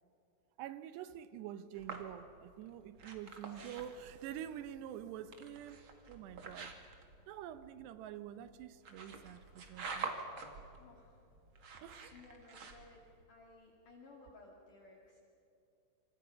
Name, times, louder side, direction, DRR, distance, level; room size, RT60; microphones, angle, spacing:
voice 1, 0.6-5.8 6.1-6.7 7.3-10.1 11.8-12.1, right 10 dB, 80° right, 12 dB, 3.0 m, -47 dB
sound 1, 1.7-13.2, right 4 dB, 40° right, 2.1 m, -48 dB
voice 2, 10.8-11.3 11.8-15.2, left 3 dB, 55° left, -1 dB, 3.5 m, -59 dB
28.5 x 26.5 x 5.8 m, 2.8 s
omnidirectional pair, 5.0 m